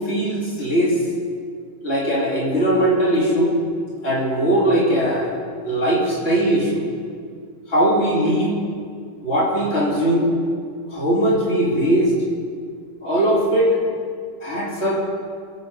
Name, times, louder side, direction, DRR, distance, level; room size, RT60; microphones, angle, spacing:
voice 1, 0.1-0.9 1.8-3.6 4.0-5.3 5.6-6.8 7.7-8.6 9.2-10.3 10.9-12.1 13.0-13.8 14.4-15.0, right 1 dB, 50° left, -5 dB, 3.0 m, -19 dB
22.0 x 8.5 x 5.4 m, 2.2 s
omnidirectional pair, 1.4 m